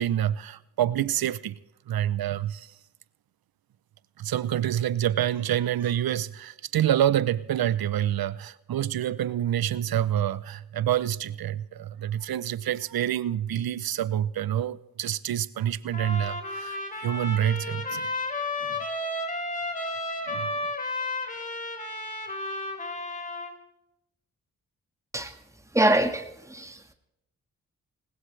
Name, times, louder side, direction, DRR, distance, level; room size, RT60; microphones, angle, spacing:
voice 1, 0.0-1.6 1.9-2.7 4.2-18.1 18.6-18.8 20.3-20.5, right 11 dB, 70° right, 0.7 m, -27 dB
Trumpet, 15.9-23.5, left 2 dB, 20° left, 3.8 m, -32 dB
voice 2, 25.7-26.9, right 1 dB, 10° right, 1.7 m, -24 dB
20.0 x 18.5 x 3.3 m
supercardioid pair, 45°, 37 cm